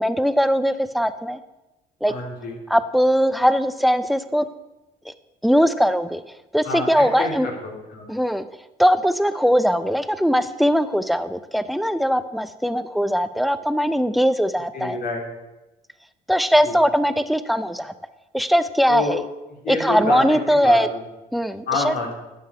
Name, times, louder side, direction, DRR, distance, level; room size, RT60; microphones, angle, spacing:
voice 1, 0.0-1.4 2.0-2.1 2.7-4.5 5.1-5.2 5.4-6.2 6.5-7.5 8.1-8.5 8.8-15.0 16.3-17.9 18.3-19.2 19.7-20.9 21.3-22.0, equal, ahead, 13 dB, 0.5 m, -20 dB
voice 2, 2.1-2.5 6.6-7.3 7.6-8.1 14.7-15.2 16.7-16.8 18.9-19.1 19.6-20.4 20.6-21.0 21.7-22.1, left 3 dB, 65° left, 0 dB, 3.1 m, -27 dB
11.5 x 7.7 x 4.9 m, 1.0 s
cardioid pair, 110°, 17 cm